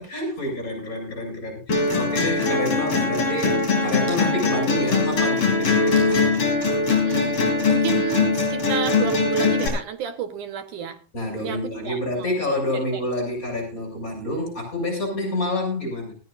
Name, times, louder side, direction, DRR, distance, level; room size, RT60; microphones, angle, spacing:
voice 1, 0.1-6.3 11.1-16.1, left 1 dB, 20° left, 2 dB, 6.6 m, -28 dB
sound 1, 1.7-9.7, left 4 dB, 40° left, 5.4 m, -21 dB
sound 2, 3.0-3.2 4.1-4.3 4.7-4.8 5.2-5.3 5.9-6.2 6.9-7.1 7.6-7.9 8.4-8.6 9.7-10.0, right 2 dB, 45° right, 7.9 m, -44 dB
voice 2, 7.0-11.0 11.4-12.4 12.7-13.1, right 8 dB, 65° right, 9 dB, 2.4 m, -31 dB
19.0 x 15.0 x 2.6 m, 0.31 s
omnidirectional pair, 4.3 m